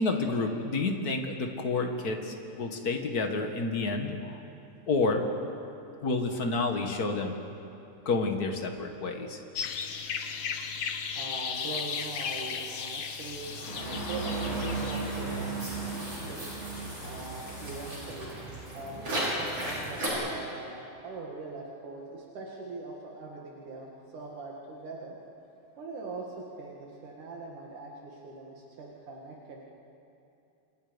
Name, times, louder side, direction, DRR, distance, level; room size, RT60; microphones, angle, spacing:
voice 1, 0.0-4.4 4.9-5.2 6.0-7.4 8.1-9.4, left 3 dB, 35° left, 4 dB, 1.8 m, -29 dB
sound 1, 9.6-15.2, left 6 dB, 55° left, 1.6 m, -35 dB
voice 2, 10.9-18.4 18.7-25.2 25.8-29.6, right 3 dB, 75° right, -2 dB, 3.4 m, -42 dB
sound 2, 11.5-18.2, left 2 dB, 70° left, 6.4 m, -50 dB
sound 3, 13.2-20.1, right 2 dB, 45° right, 7.5 m, -35 dB
27.5 x 27.5 x 5.3 m, 2.8 s
omnidirectional pair, 3.6 m